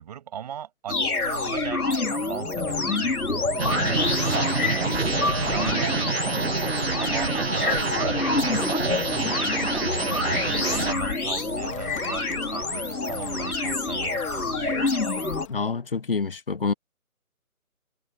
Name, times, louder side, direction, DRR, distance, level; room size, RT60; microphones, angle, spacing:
voice 1, 0.0-6.3 7.0-9.7 10.1-14.9, right 9 dB, 25° right, 7.8 m, -38 dB
sound 1, 0.9-15.5, left 3 dB, 80° left, 4.3 m, -27 dB
Bird, 2.6-15.7, left 10 dB, 20° left, 2.5 m, -44 dB
sound 2, 3.6-10.9, right 4 dB, 45° right, 0.5 m, -27 dB
voice 2, 15.5-16.7, left 4 dB, 40° left, 0.7 m, -27 dB
figure-of-eight pair, 160°, 43 cm